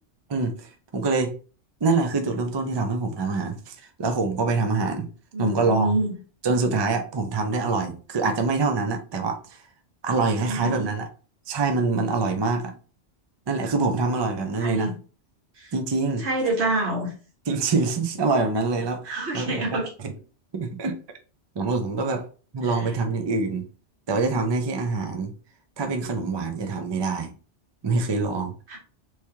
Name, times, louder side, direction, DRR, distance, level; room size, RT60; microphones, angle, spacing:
voice 1, 0.3-1.3 1.8-5.1 5.4-5.9 6.4-9.6 10.0-11.1 11.5-12.7 13.5-14.9 15.7-16.3 17.5-19.8 20.0-20.1 20.5-21.0 21.6-22.2 22.5-23.7 24.1-25.3 25.8-27.3 27.8-28.5, right 3 dB, 45° right, 5 dB, 0.3 m, -25 dB
voice 2, 5.3-6.1 10.4-10.9 14.6-14.9 15.6-15.7 16.2-17.1 19.0-19.9 22.7-22.9 28.7-28.8, right 2 dB, 65° right, 0 dB, 1.4 m, -27 dB
3.4 x 3.1 x 2.8 m, 0.37 s
omnidirectional pair, 1.2 m